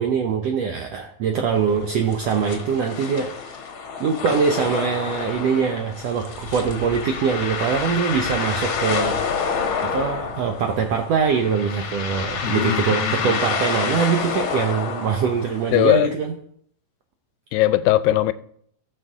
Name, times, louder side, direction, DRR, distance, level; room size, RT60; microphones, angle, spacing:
voice 1, 0.0-3.6 4.0-9.2 9.8-16.3, right 6 dB, 85° right, 1.4 m, -23 dB
sound 1, 1.5-15.9, left 6 dB, 60° left, 1.4 m, -28 dB
voice 2, 12.4-13.4 15.7-16.1 17.5-18.3, left 15 dB, 85° left, 2.3 m, -20 dB
18.0 x 6.3 x 3.6 m
omnidirectional pair, 4.0 m